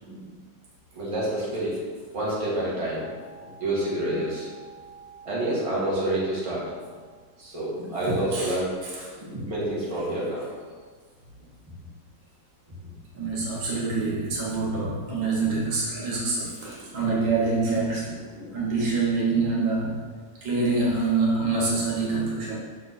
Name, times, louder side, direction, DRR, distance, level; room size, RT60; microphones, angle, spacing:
voice 1, 0.9-1.8 2.1-3.2 3.6-4.5 5.2-6.7 7.4-8.8 9.1-10.5 16.9-17.0 18.3-18.5, right 1 dB, 20° right, -7 dB, 1.4 m, -28 dB
voice 2, 4.6-5.3 8.3-8.6 8.8-9.1 13.1-18.2 18.5-20.1 20.4-22.6, right 3 dB, 80° right, -5 dB, 2.0 m, -26 dB
6.1 x 3.7 x 4.1 m, 1.5 s
omnidirectional pair, 2.1 m